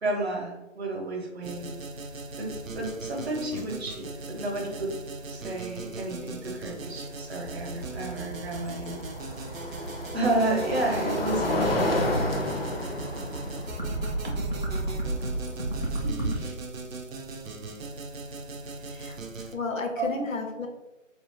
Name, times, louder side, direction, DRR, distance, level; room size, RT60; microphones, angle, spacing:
voice 1, 0.0-1.7 2.4-5.0 5.3-9.0 10.1-12.0 15.8-16.6 20.0-20.2, right 2 dB, 55° right, 1 dB, 0.7 m, -31 dB
sound 1, 1.4-19.5, right 3 dB, 90° right, 0.6 m, -40 dB
sound 2, 2.1-2.2 2.5-3.0 4.8-4.9 7.9-16.0, left 1 dB, 50° left, 0.4 m, -31 dB
sound 3, 7.4-16.4, right 2 dB, 35° right, 0.4 m, -33 dB
voice 2, 19.5-20.7, left 3 dB, 85° left, 3 dB, 0.7 m, -32 dB
2.4 x 2.2 x 3.4 m, 1.0 s
figure-of-eight pair, 155°, 39 cm